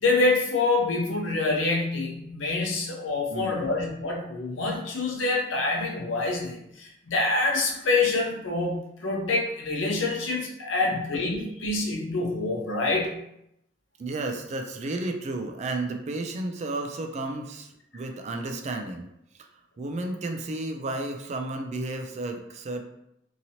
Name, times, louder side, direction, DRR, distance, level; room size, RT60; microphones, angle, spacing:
voice 1, 0.0-13.1, left 3 dB, 80° left, 0 dB, 0.7 m, -26 dB
voice 2, 3.3-3.8 10.8-11.0 14.0-19.1 19.4-19.5 19.8-22.8, right 2 dB, 35° right, 5 dB, 0.3 m, -32 dB
2.9 x 2.7 x 2.7 m, 0.79 s
head